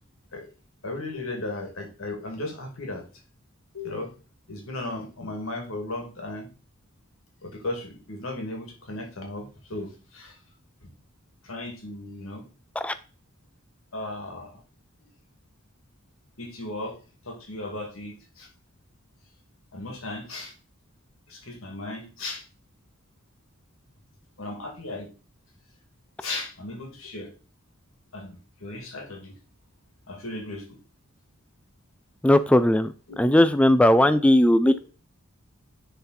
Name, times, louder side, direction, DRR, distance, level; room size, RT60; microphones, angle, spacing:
voice 1, 0.8-3.0 3.7-4.1 4.5-6.5 7.4-10.4 11.4-12.5 13.9-14.6 15.0-15.1 16.4-17.0 17.2-18.5 19.7-20.5 21.3-22.4 24.4-25.1 26.2-27.3 28.1-29.4 30.1-30.8 34.6-34.8, left 2 dB, 85° left, 3 dB, 2.4 m, -36 dB
voice 2, 32.2-32.9 33.2-34.9, left 1 dB, 5° left, 12 dB, 0.3 m, -18 dB
10.0 x 4.0 x 4.3 m, 0.35 s
head